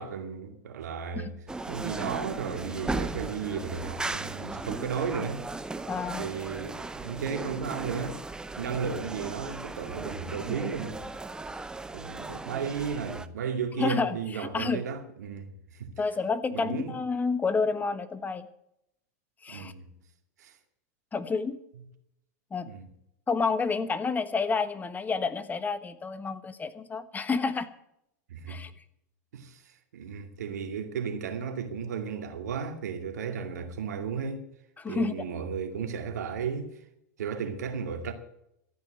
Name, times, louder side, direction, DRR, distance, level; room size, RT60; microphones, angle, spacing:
voice 1, 0.0-1.3 1.7-5.4 6.2-8.2 8.6-11.0 11.9-15.9 16.5-16.9 19.5-19.9 20.4-20.5 22.6-22.9 28.3-28.6 29.3-29.6 29.9-34.4 34.9-36.7 37.2-38.1, right 6 dB, 80° right, 2.4 m, -34 dB
sound 1, 1.5-13.3, right 3 dB, 10° right, 0.8 m, -37 dB
voice 2, 5.9-6.3 13.8-14.8 16.0-18.5 19.4-19.7 21.1-21.6 22.5-22.7 23.3-27.7 28.5-28.7 34.8-35.1, left 4 dB, 20° left, 1.3 m, -29 dB
14.0 x 9.4 x 7.8 m
hypercardioid pair, 100°, 9 cm